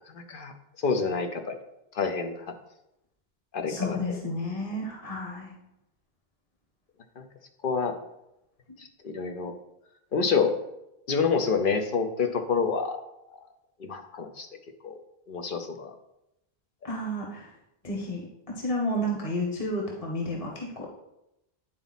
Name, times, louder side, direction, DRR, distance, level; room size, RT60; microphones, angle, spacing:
voice 1, 0.1-0.5 0.8-1.6 1.9-2.5 3.5-4.2 7.2-7.3 7.6-8.0 9.0-9.5 10.1-10.5 11.1-13.0 13.8-14.5 14.8-15.0 15.3-15.9, left 5 dB, 60° left, 5 dB, 0.9 m, -27 dB
voice 2, 3.7-5.6 8.7-8.8 16.8-17.5 17.8-20.9, left 1 dB, 35° left, -1 dB, 1.2 m, -31 dB
9.5 x 4.0 x 4.1 m, 0.87 s
omnidirectional pair, 1.0 m